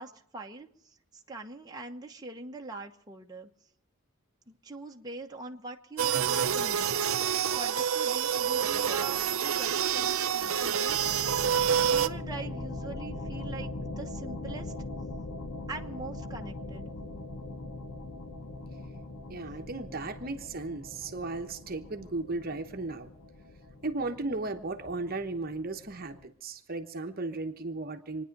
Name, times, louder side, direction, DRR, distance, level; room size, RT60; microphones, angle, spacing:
voice 1, 0.0-3.5 4.5-11.0 11.2-11.6 11.8-14.7 15.7-16.9, right 3 dB, 20° right, 1 dB, 1.1 m, -43 dB
sound 1, 6.0-12.1, right 8 dB, 75° right, 0.6 m, -27 dB
sound 2, 10.9-26.3, left 2 dB, 90° left, 1.3 m, -41 dB
voice 2, 19.3-23.1 23.8-28.2, right 3 dB, 45° right, 6 dB, 1.1 m, -35 dB
26.0 x 10.0 x 5.3 m, 0.70 s
head